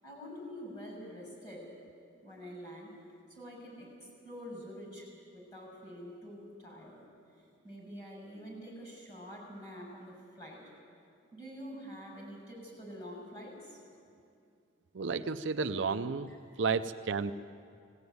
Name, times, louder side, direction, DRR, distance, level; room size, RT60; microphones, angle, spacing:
voice 1, 0.0-1.7 2.2-2.9 3.3-7.1 7.6-10.6 11.3-13.8 16.3-16.4, equal, 20° left, -2 dB, 6.7 m, -46 dB
voice 2, 14.9-16.3 16.6-17.3, right 4 dB, 65° right, 9 dB, 0.5 m, -32 dB
19.0 x 16.5 x 9.5 m, 2.4 s
head